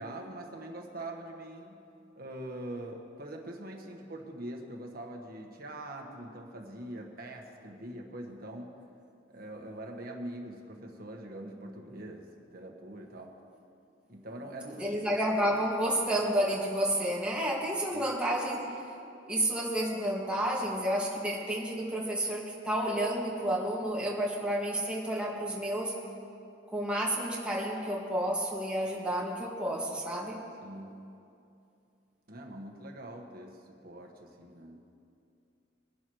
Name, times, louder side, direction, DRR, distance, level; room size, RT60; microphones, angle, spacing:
voice 1, 0.0-1.8 2.2-8.8 9.3-13.3 14.1-14.9 17.9-18.0 30.6-31.0 32.3-34.8, right 1 dB, 50° right, 2 dB, 1.5 m, -43 dB
voice 2, 14.8-18.7 19.3-26.0 26.7-30.4, right 1 dB, 5° right, -4 dB, 2.0 m, -30 dB
22.5 x 11.0 x 3.2 m, 2.6 s
head